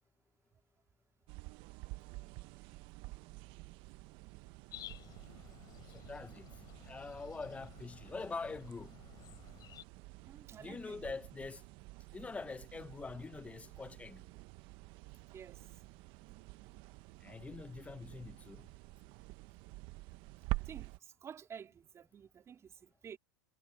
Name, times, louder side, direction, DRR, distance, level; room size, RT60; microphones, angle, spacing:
sound 1, 1.3-21.0, right 22 dB, 50° right, 0.9 m, -48 dB
sound 2, 4.7-9.8, left 12 dB, 35° left, 8.0 m, -54 dB
voice 1, 5.9-6.5 6.8-9.0 10.6-11.6 12.1-14.3 17.2-18.7, left 4 dB, 10° left, 0.8 m, -44 dB
voice 2, 10.3-11.0 15.3-15.6 20.6-20.9 21.2-23.2, right 8 dB, 25° right, 3.1 m, -51 dB
hypercardioid pair, 120°, 11 cm